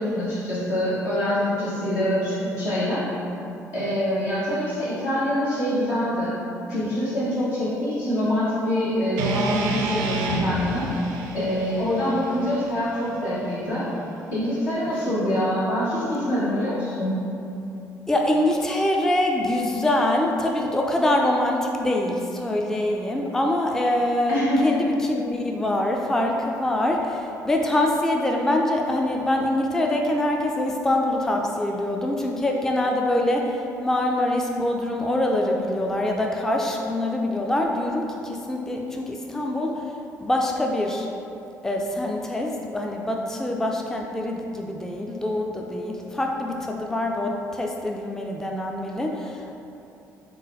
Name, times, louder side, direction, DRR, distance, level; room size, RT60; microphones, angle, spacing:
voice 1, 0.0-3.0 3.7-6.3 6.7-10.9 11.3-13.9 14.3-17.2 24.3-24.7, equal, 75° left, -12 dB, 1.3 m, -25 dB
sound 1, 9.2-13.4, right 3 dB, 70° right, 0.3 m, -30 dB
voice 2, 15.1-15.4 18.1-39.8 40.2-41.1 41.6-49.6, left 1 dB, 5° left, 1 dB, 0.3 m, -24 dB
3.8 x 3.7 x 2.5 m, 2.8 s
figure-of-eight pair, 45°, 9 cm